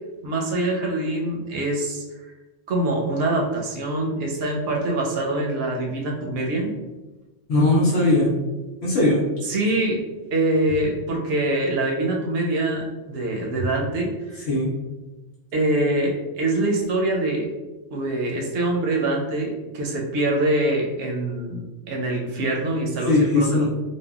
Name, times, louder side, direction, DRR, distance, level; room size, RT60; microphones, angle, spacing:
voice 1, 0.2-2.0 2.7-6.7 9.4-10.0 10.3-14.5 15.5-17.5 17.9-23.7, right 1 dB, 65° right, 0 dB, 0.8 m, -24 dB
voice 2, 7.5-8.3 8.8-9.2 14.5-14.7 23.1-23.7, left 2 dB, 90° left, -8 dB, 1.0 m, -19 dB
3.3 x 2.1 x 2.3 m, 1.1 s
omnidirectional pair, 1.2 m